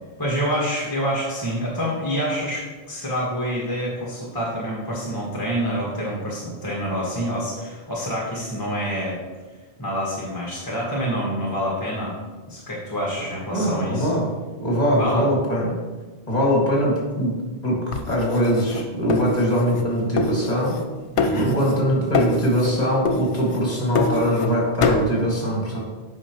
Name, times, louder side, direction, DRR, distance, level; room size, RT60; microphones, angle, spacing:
voice 1, 0.2-9.2 9.8-12.1 12.5-14.1 15.0-15.3 21.1-21.5, equal, 20° left, -5 dB, 1.3 m, -27 dB
voice 2, 13.5-14.3 14.6-15.8 16.3-17.3 17.6-20.8 21.4-25.8, equal, 35° left, -3 dB, 2.0 m, -22 dB
sound 1, 17.9-19.9 20.2-20.9 21.2-21.9 22.1-22.7 23.0-24.5 24.8-25.1, left 3 dB, 80° left, 1.0 m, -25 dB
8.2 x 5.7 x 3.0 m, 1.3 s
omnidirectional pair, 1.2 m